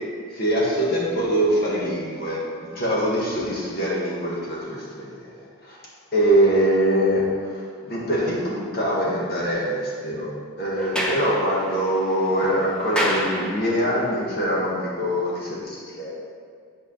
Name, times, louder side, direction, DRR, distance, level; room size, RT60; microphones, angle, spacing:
voice 1, 0.3-2.4 2.7-5.8 6.1-10.3 10.6-16.1, equal, 45° left, -5 dB, 1.6 m, -23 dB
Sliding door, 10.7-14.0, equal, 5° left, 0.7 m, -30 dB
8.6 x 4.8 x 6.3 m, 2.1 s
head